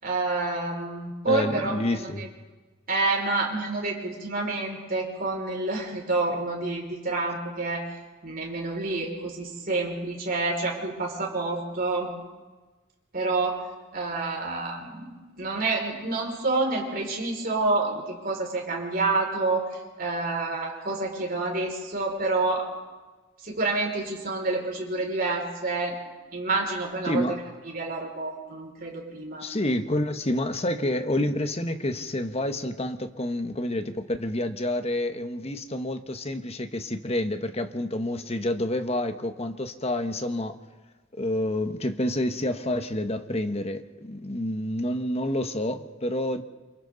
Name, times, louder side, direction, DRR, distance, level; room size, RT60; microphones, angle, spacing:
voice 1, 0.0-2.3 2.9-7.8 8.2-12.1 13.1-13.6 13.9-15.1 15.4-19.6 20.0-22.7 23.4-25.9 26.3-27.2 27.7-29.5, right 3 dB, 45° right, 5.9 m, -28 dB
voice 2, 1.3-2.3 27.1-27.4 29.4-40.6 41.2-46.4, left 1 dB, 30° left, 1.3 m, -28 dB
28.5 x 28.0 x 4.1 m
head